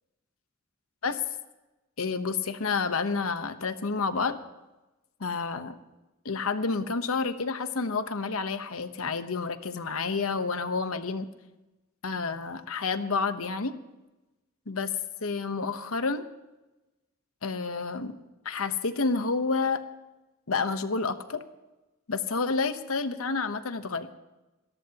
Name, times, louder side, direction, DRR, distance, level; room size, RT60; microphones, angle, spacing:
voice 1, 2.0-4.4 5.2-5.7 6.2-11.3 12.0-13.7 14.7-14.9 15.2-16.3 17.4-18.1 18.4-19.8 20.5-21.4 22.1-24.2, left 4 dB, 70° left, 10 dB, 1.0 m, -29 dB
29.0 x 13.5 x 3.0 m, 1.1 s
head